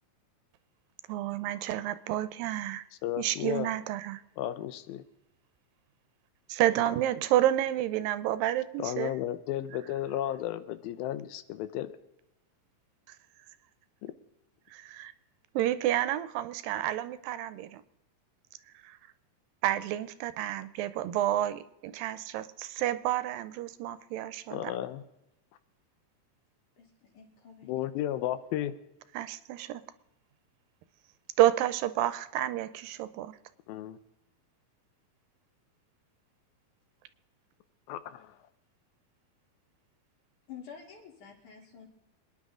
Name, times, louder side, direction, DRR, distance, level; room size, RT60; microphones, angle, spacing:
voice 1, 1.1-2.8 3.2-4.2 6.5-9.2 14.7-15.1 15.5-17.8 18.8-19.0 19.6-24.7 29.1-29.8 31.4-33.4, right 13 dB, 80° right, 14 dB, 2.4 m, -30 dB
voice 2, 3.0-3.7 4.4-5.0 8.8-11.9 14.0-14.1 24.5-25.0 27.7-28.7 33.7-34.0 37.9-38.3, left 12 dB, 90° left, 12 dB, 2.7 m, -33 dB
voice 3, 26.8-27.9 40.5-41.9, left 7 dB, 60° left, 0 dB, 4.6 m, -49 dB
27.0 x 10.5 x 3.7 m, 0.90 s
omnidirectional pair, 4.2 m